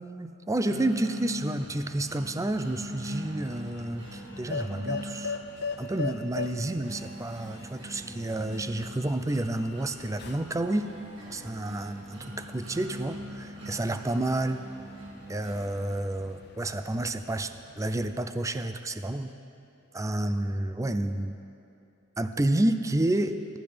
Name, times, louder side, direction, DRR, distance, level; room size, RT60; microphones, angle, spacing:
voice 1, 0.0-5.4 5.8-10.9 11.3-14.6 15.3-19.3 19.9-21.4 22.2-23.6, right 1 dB, 15° right, 9 dB, 0.4 m, -30 dB
sound 1, 0.6-16.6, equal, 65° right, 2.1 m, -42 dB
sound 2, 1.5-18.1, left 4 dB, 55° left, 0.6 m, -42 dB
19.0 x 12.0 x 3.4 m, 2.6 s
head